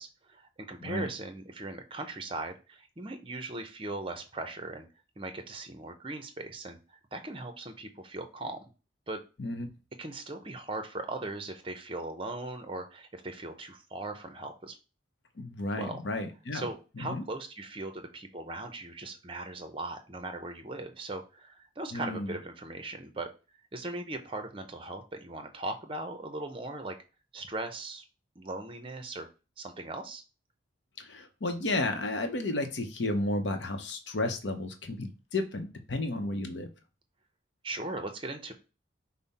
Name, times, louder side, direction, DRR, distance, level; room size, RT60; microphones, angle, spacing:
voice 1, 0.0-4.9 5.2-8.6 9.1-9.2 10.0-14.8 15.8-16.0 16.5-23.3 23.7-27.0 27.3-28.0 28.4-29.3 29.6-30.2 37.6-38.5, right 2 dB, 25° right, 6 dB, 0.6 m, -39 dB
voice 2, 15.4-16.7 17.0-17.2 21.9-22.3 31.0-36.7, left 2 dB, 70° left, 6 dB, 0.7 m, -32 dB
5.4 x 2.1 x 4.1 m, 0.32 s
head